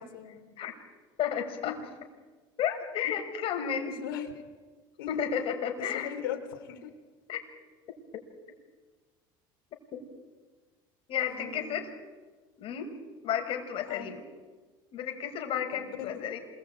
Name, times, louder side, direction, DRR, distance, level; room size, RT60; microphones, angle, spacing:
voice 1, 0.1-0.5 1.6-1.8 4.0-4.5 5.0-5.2 5.8-6.9 11.3-11.8 13.9-14.1 15.7-16.2, left 9 dB, 85° left, 6 dB, 4.1 m, -39 dB
voice 2, 1.2-1.8 2.6-3.9 5.1-6.1 7.3-7.4 9.9-10.0 11.1-11.9 12.6-12.9 13.2-14.2 14.9-16.4, left 9 dB, 55° left, 4 dB, 6.0 m, -32 dB
27.5 x 20.5 x 9.1 m, 1.4 s
supercardioid pair, 95°, 12 cm